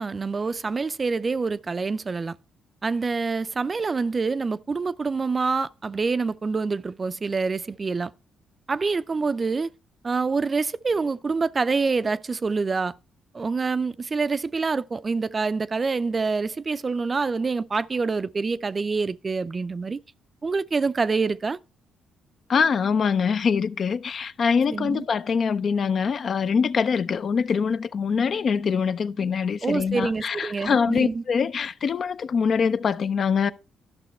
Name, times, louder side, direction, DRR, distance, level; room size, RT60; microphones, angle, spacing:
voice 1, 0.0-2.4 2.8-8.1 8.7-9.7 10.0-12.9 13.3-20.0 20.4-21.6 24.7-25.1 29.6-31.2, right 4 dB, 30° right, 0.4 m, -26 dB
voice 2, 22.5-33.5, left 6 dB, 50° left, 0.4 m, -24 dB
11.5 x 6.0 x 4.2 m
cardioid pair, 90°, 0 cm